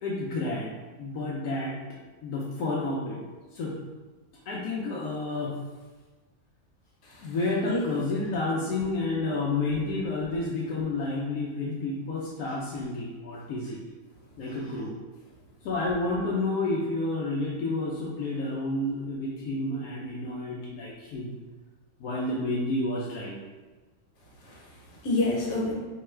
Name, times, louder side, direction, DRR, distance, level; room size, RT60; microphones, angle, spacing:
voice 1, 0.0-0.7 1.0-1.8 2.2-3.2 3.5-3.8 4.5-5.6 7.2-13.8 14.4-15.0 15.6-21.3 22.0-23.4, left 2 dB, 80° left, -5 dB, 1.1 m, -30 dB
voice 2, 7.0-7.3 7.6-7.8 24.4-25.7, left 2 dB, 65° left, -4 dB, 1.3 m, -29 dB
4.6 x 2.2 x 3.1 m, 1.3 s
omnidirectional pair, 1.5 m